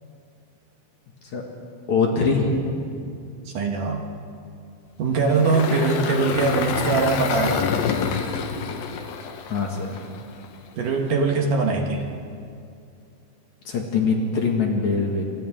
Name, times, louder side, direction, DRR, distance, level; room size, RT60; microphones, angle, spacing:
voice 1, 1.9-2.5 9.5-10.0 13.6-15.2, left 4 dB, 55° left, 0 dB, 2.8 m, -22 dB
voice 2, 3.5-4.1 5.0-7.6 10.8-12.0, right 4 dB, 60° right, 1 dB, 2.6 m, -22 dB
Engine, 5.2-10.5, left 6 dB, 70° left, 2.8 m, -27 dB
27.5 x 26.0 x 3.6 m, 2.4 s
omnidirectional pair, 4.6 m